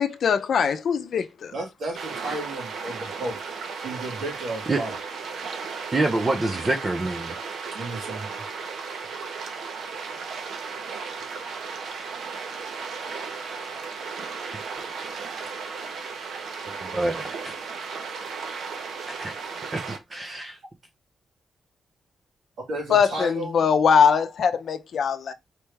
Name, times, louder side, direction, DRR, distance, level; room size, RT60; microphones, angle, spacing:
voice 1, 0.0-1.5 22.9-25.3, left 6 dB, 55° left, 0.6 m, -21 dB
voice 2, 1.5-3.4 3.8-5.0 7.7-8.3 22.7-23.6, right 2 dB, 70° right, 2.7 m, -33 dB
sound 1, 1.9-20.0, right 5 dB, 85° right, 0.9 m, -35 dB
voice 3, 5.9-7.4 16.8-17.5 19.1-19.3 19.7-19.8 20.1-20.6, right 2 dB, 20° right, 0.5 m, -26 dB
4.4 x 3.2 x 3.4 m
wide cardioid pair, 180°, 0 cm